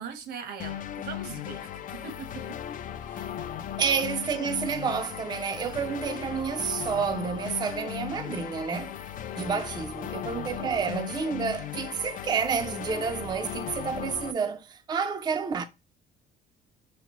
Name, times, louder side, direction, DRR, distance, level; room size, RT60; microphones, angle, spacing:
voice 1, 0.0-1.7 2.0-2.4 3.0-3.4 9.3-9.5, right 6 dB, 75° right, 1.0 m, -40 dB
sound 1, 0.6-14.3, left 10 dB, 55° left, 0.4 m, -37 dB
voice 2, 3.8-9.0 9.3-15.6, right 6 dB, 25° right, 0.4 m, -30 dB
6.0 x 2.0 x 2.9 m
cardioid pair, 110°, 17 cm